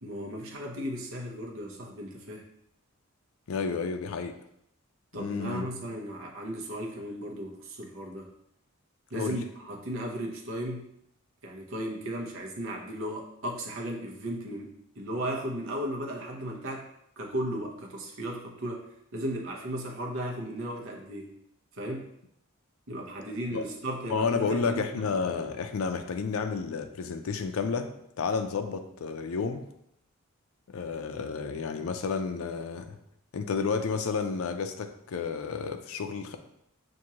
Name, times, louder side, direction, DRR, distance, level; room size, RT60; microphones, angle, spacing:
voice 1, 0.0-2.4 5.1-8.3 9.1-10.9 11.4-16.9 17.2-21.4 21.7-22.1 22.9-25.1, right 1 dB, 65° right, 0 dB, 0.8 m, -36 dB
voice 2, 3.5-4.3 5.2-5.7 9.1-9.4 23.5-23.6 24.1-29.7 30.7-33.0 33.3-36.4, left 5 dB, 75° left, 7 dB, 0.4 m, -31 dB
6.0 x 2.6 x 2.8 m, 0.76 s
head